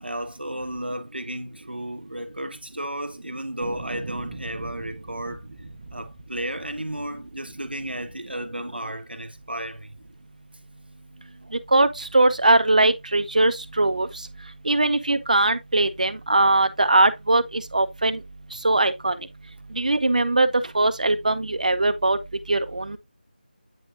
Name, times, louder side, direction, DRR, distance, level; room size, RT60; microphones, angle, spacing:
voice 1, 0.0-5.5 5.9-10.0 11.4-11.5, right 1 dB, 80° right, 1.2 m, -33 dB
sound 1, 3.6-8.8 9.4-10.1, right 2 dB, 30° right, 1.0 m, -41 dB
voice 2, 11.7-14.1 14.6-18.2 18.6-19.2 19.8-20.5 20.7-22.2 22.5-23.0, right 2 dB, 50° right, 0.9 m, -20 dB
9.0 x 5.3 x 2.6 m
figure-of-eight pair, 165°, 5 cm